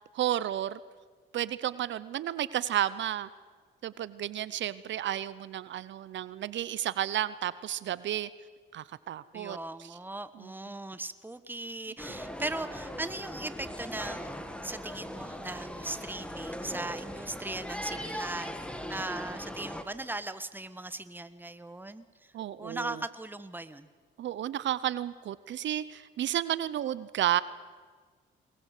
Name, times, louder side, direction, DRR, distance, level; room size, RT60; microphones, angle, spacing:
voice 1, 0.1-0.8 1.3-3.3 3.8-8.3 8.7-10.0 10.3-10.5 22.3-23.0 24.2-27.4, right 11 dB, 70° right, 17 dB, 0.8 m, -32 dB
voice 2, 9.3-14.4 14.6-18.6 18.9-22.1 22.6-23.9, right 2 dB, 10° right, 13 dB, 1.3 m, -38 dB
sound 1, 12.0-19.8, equal, 5° left, 2.4 m, -39 dB
23.5 x 20.0 x 8.3 m, 1.5 s
cardioid pair, 90°, 20 cm